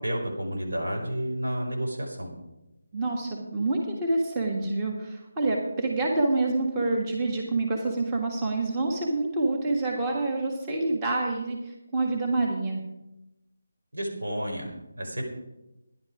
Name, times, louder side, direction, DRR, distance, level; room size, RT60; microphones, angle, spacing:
voice 1, 0.0-2.3 13.9-15.2, right 1 dB, 80° right, 0 dB, 4.5 m, -31 dB
voice 2, 2.9-12.8, right 2 dB, 20° right, 0 dB, 1.6 m, -27 dB
13.5 x 10.5 x 4.9 m, 0.94 s
figure-of-eight pair, 160°, 0 cm